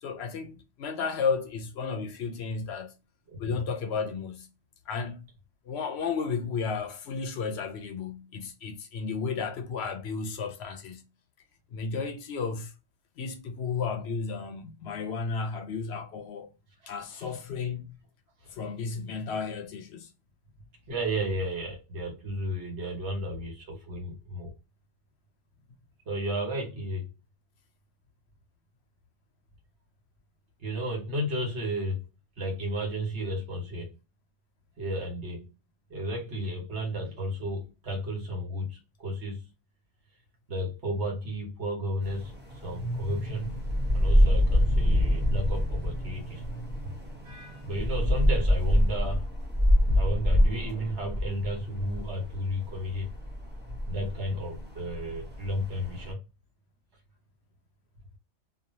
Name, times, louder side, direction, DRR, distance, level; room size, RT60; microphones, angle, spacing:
voice 1, 0.0-2.9 3.4-4.5 4.9-5.3 5.7-11.0 11.7-12.7 13.2-16.5 16.9-17.9 18.5-20.1, left 5 dB, 70° left, 0.8 m, -33 dB
voice 2, 3.3-3.6 17.1-17.4 18.4-18.6 20.9-24.5 26.0-27.1 30.6-32.0 32.4-33.9 34.8-35.5 35.9-39.5 40.5-42.4 42.6-43.5 43.9-46.4 47.2-49.3 49.9-53.1 53.9-56.2, equal, 70° right, 1.6 m, -33 dB
sound 1, 42.0-56.1, equal, 10° right, 0.7 m, -26 dB
3.1 x 2.3 x 2.6 m
omnidirectional pair, 1.2 m